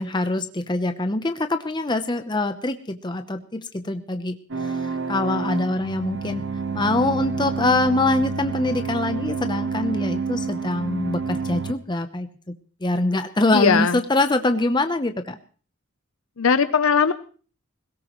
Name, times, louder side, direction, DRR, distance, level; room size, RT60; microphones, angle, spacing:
voice 1, 0.0-4.4 4.6-4.8 5.1-6.4 6.7-12.3 12.8-15.4, left 2 dB, 20° left, 8 dB, 0.7 m, -24 dB
sound 1, 4.5-11.7, right 5 dB, 55° right, 1.1 m, -28 dB
voice 2, 13.5-14.0 16.4-17.1, left 6 dB, 70° left, 12 dB, 0.7 m, -19 dB
21.0 x 17.5 x 3.1 m, 0.39 s
head